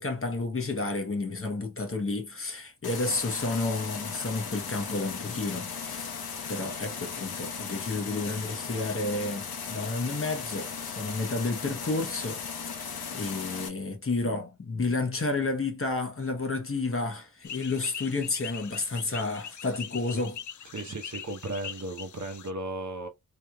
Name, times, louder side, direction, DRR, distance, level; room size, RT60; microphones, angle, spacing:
voice 1, 0.0-6.2 6.5-12.4 13.1-20.4, left 3 dB, 40° left, 0.9 m, -31 dB
sound 1, 2.8-13.7, left 6 dB, 80° left, 0.9 m, -37 dB
sound 2, 17.4-22.5, left 8 dB, 55° left, 0.4 m, -42 dB
voice 2, 20.7-23.1, right 2 dB, 55° right, 0.9 m, -35 dB
3.4 x 3.0 x 2.3 m
wide cardioid pair, 105°, 36 cm